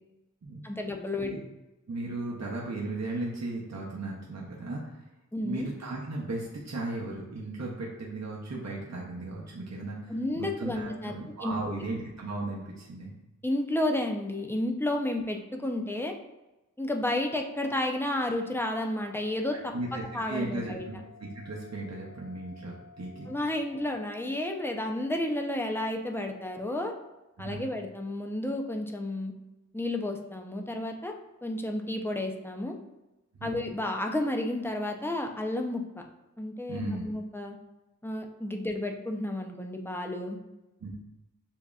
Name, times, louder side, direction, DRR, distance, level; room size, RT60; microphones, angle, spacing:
voice 1, 0.6-1.3 5.3-5.7 10.1-11.1 11.4-11.7 13.4-16.1 16.8-19.5 20.1-20.8 23.3-26.9 27.4-29.3 29.7-31.1 31.4-32.8 33.4-35.8 36.4-37.6 38.0-40.4, left 1 dB, 5° left, 2 dB, 0.5 m, -31 dB
voice 2, 1.9-5.0 5.4-13.1 19.5-20.9 21.2-23.3 27.4-27.6 33.4-33.6 36.7-37.0 40.8-40.9, right 2 dB, 55° right, -4 dB, 0.8 m, -36 dB
sound 1, 17.1-27.1, left 5 dB, 50° left, 1.0 m, -53 dB
7.0 x 2.8 x 2.4 m, 1.0 s
wide cardioid pair, 45°, 32 cm